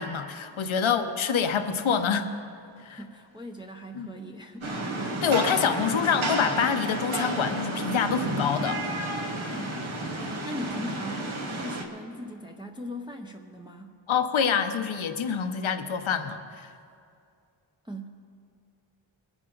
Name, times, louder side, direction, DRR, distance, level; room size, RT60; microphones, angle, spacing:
voice 1, 0.0-2.3 2.8-3.0 3.9-4.1 5.2-8.8 14.1-16.7, left 7 dB, 75° left, 8 dB, 0.9 m, -26 dB
voice 2, 2.9-4.7 9.5-9.9 10.2-14.0 17.8-18.1, equal, 10° right, 1 dB, 0.6 m, -39 dB
Rain, 4.6-11.8, right 2 dB, 80° right, 1.5 m, -31 dB
22.0 x 10.0 x 3.9 m, 2.4 s
wide cardioid pair, 100°, 48 cm